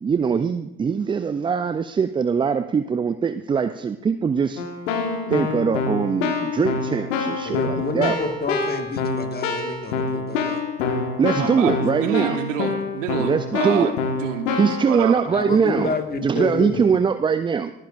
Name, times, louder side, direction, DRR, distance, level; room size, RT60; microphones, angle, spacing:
voice 1, 0.0-4.6 5.2-8.2 11.2-12.4 13.2-13.9 14.6-15.9 16.2-17.7, right 6 dB, 15° right, 11 dB, 0.3 m, -22 dB
Keyboard (musical), 4.6-14.9, left 4 dB, 80° left, 1.6 m, -26 dB
voice 2, 7.4-10.6 15.3-16.8, left 3 dB, 25° left, 6 dB, 1.6 m, -28 dB
voice 3, 11.4-13.9 14.2-15.2, right 10 dB, 80° right, 8 dB, 1.0 m, -28 dB
24.5 x 10.0 x 2.5 m, 0.94 s
hypercardioid pair, 60°, 37 cm